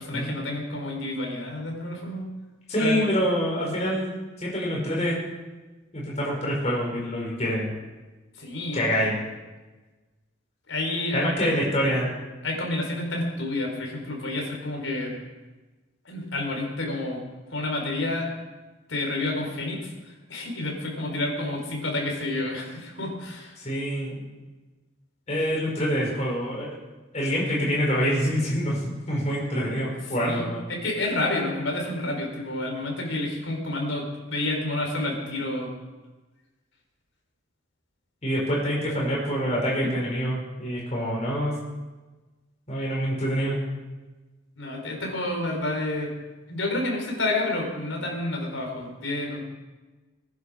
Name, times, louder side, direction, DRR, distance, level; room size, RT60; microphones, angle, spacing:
voice 1, 0.0-2.3 2.8-3.1 8.4-9.1 10.7-11.3 12.4-15.1 16.0-17.2 17.5-18.3 18.9-19.8 20.3-23.6 30.2-35.7 39.8-39.9 44.6-46.1 46.5-49.4, left 2 dB, 80° left, 0 dB, 4.4 m, -29 dB
voice 2, 2.7-4.1 4.4-5.2 5.9-7.7 8.7-9.2 11.1-12.1 23.6-24.2 25.3-26.8 27.1-30.6 38.2-41.5 42.7-43.6, equal, 35° left, -3 dB, 5.3 m, -26 dB
20.5 x 11.0 x 5.0 m, 1.2 s
head